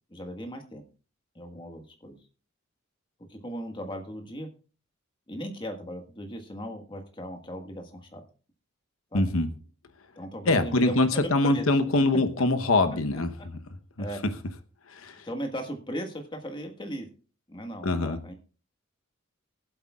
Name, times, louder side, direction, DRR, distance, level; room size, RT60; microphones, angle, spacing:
voice 1, 0.1-0.8 1.3-2.1 3.3-4.5 5.3-8.2 9.1-9.2 10.1-11.6 14.0-14.2 15.2-17.1 17.5-18.3, equal, 25° left, 4 dB, 1.6 m, -37 dB
voice 2, 9.1-9.5 10.5-13.6 14.0-14.1 14.9-15.3 17.8-18.2, left 2 dB, 85° left, 10 dB, 1.0 m, -24 dB
22.5 x 8.0 x 2.4 m, 0.37 s
head